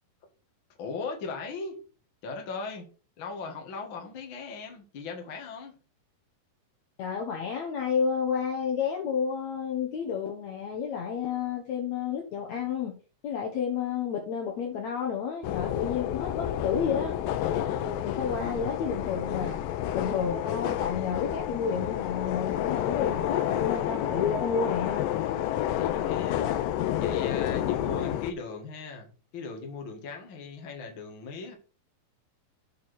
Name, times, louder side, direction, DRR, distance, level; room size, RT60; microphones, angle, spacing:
voice 1, 0.8-1.8 2.2-2.9 3.2-5.7 25.8-26.5 27.0-31.5, left 4 dB, 40° left, 2 dB, 2.2 m, -38 dB
voice 2, 7.0-13.0 13.2-17.1 18.0-19.6 19.9-25.1, left 6 dB, 60° left, 2 dB, 2.4 m, -30 dB
sound 1, 15.4-28.3, left 11 dB, 85° left, 2.5 m, -30 dB
8.3 x 5.1 x 6.2 m, 0.36 s
omnidirectional pair, 3.9 m